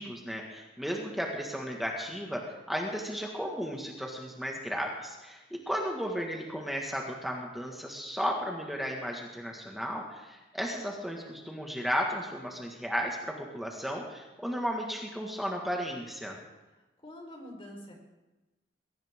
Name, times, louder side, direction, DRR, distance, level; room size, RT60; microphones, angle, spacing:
voice 1, 0.0-16.4, equal, ahead, -1 dB, 1.7 m, -34 dB
voice 2, 17.0-17.9, left 1 dB, 30° left, 1 dB, 4.3 m, -45 dB
22.0 x 17.0 x 3.7 m, 1.1 s
head